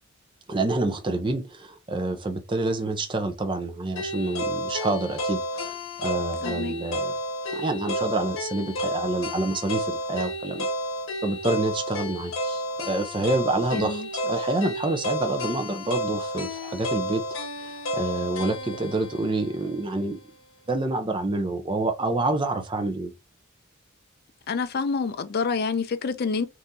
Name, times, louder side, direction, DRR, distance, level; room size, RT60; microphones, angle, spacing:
voice 1, 0.5-7.1 7.5-10.7 11.2-17.2 17.6-20.2 20.7-23.1, right 2 dB, 25° right, 0.6 m, -27 dB
sound 1, 4.0-20.1, equal, 90° left, 1.3 m, -31 dB
voice 2, 6.4-6.7 13.7-14.1 24.5-26.5, left 4 dB, 50° left, 0.4 m, -27 dB
3.6 x 2.9 x 2.6 m
head